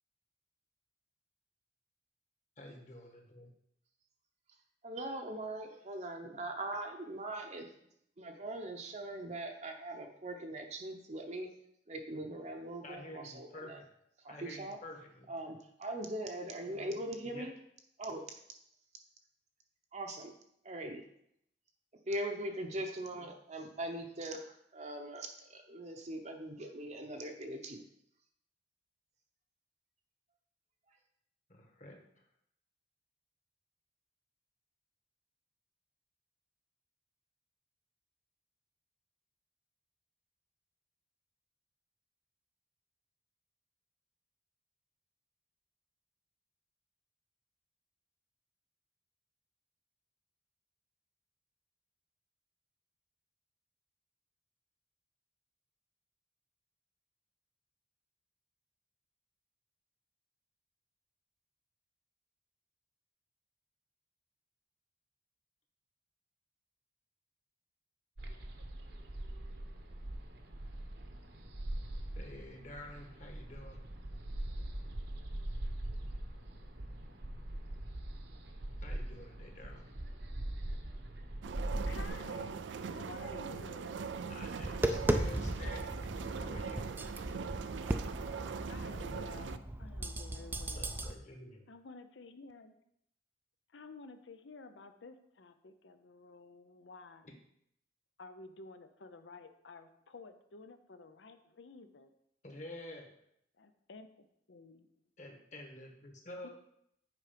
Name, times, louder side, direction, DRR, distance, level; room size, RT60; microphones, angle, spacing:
voice 1, 2.6-3.5 12.8-13.9 14.3-15.3 17.2-17.5 31.5-32.0 72.1-73.8 78.8-79.9 84.3-86.1 86.4-86.9 90.7-91.7 97.2-97.3 102.4-103.1 105.2-106.5, left 1 dB, 40° left, 2 dB, 1.5 m, -49 dB
voice 2, 4.8-7.7 8.2-11.5 11.9-13.8 14.2-14.8 15.3-17.5 18.0-18.4 19.9-20.3 20.6-21.0 22.1-27.8, right 1 dB, 40° right, 3 dB, 0.8 m, -41 dB
sound 1, 68.2-82.1, right 1 dB, 60° right, 1.0 m, -42 dB
sound 2, 81.4-89.6, right 5 dB, 80° right, 0.4 m, -41 dB
voice 3, 81.8-84.0 88.7-91.0 91.7-92.7 93.7-97.3 98.2-102.1 103.6-105.0 106.4-106.5, left 3 dB, 80° left, 9 dB, 0.7 m, -52 dB
Tap, 84.4-91.1, right 1 dB, 10° right, 0.4 m, -37 dB
8.3 x 4.9 x 5.1 m, 0.74 s
head